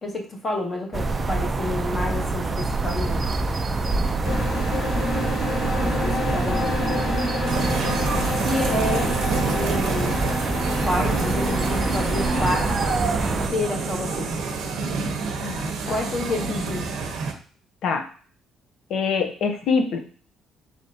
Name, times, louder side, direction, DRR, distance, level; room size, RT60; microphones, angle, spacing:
voice 1, 0.0-3.3 5.8-7.1 8.2-9.2 9.5-10.2 10.8-12.8 13.5-14.3 15.9-17.2, left 2 dB, 30° left, 2 dB, 0.8 m, -29 dB
sound 1, 0.9-13.5, right 3 dB, 20° right, 0.3 m, -26 dB
sound 2, 4.2-12.5, left 1 dB, 80° left, 1.0 m, -29 dB
sound 3, 7.4-17.3, right 4 dB, 70° right, 0.7 m, -28 dB
voice 2, 15.4-15.9 17.8-18.1 18.9-20.0, left 5 dB, 60° left, 6 dB, 0.7 m, -24 dB
4.2 x 3.5 x 2.7 m, 0.42 s
cardioid pair, 150°, 0 cm